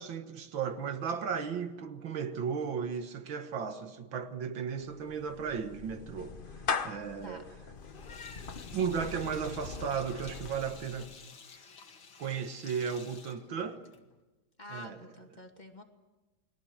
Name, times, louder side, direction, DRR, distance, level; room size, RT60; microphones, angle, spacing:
voice 1, 0.0-6.4 6.8-7.5 8.7-11.1 12.2-13.8 14.7-15.0, right 6 dB, 75° right, 2.1 m, -35 dB
Clapping / Meow, 4.8-11.2, left 5 dB, 35° left, 0.9 m, -40 dB
Sink (filling or washing), 7.8-14.2, left 5 dB, 75° left, 2.8 m, -53 dB
voice 2, 14.6-15.8, left 2 dB, 20° left, 2.4 m, -47 dB
29.5 x 21.5 x 6.5 m
omnidirectional pair, 2.2 m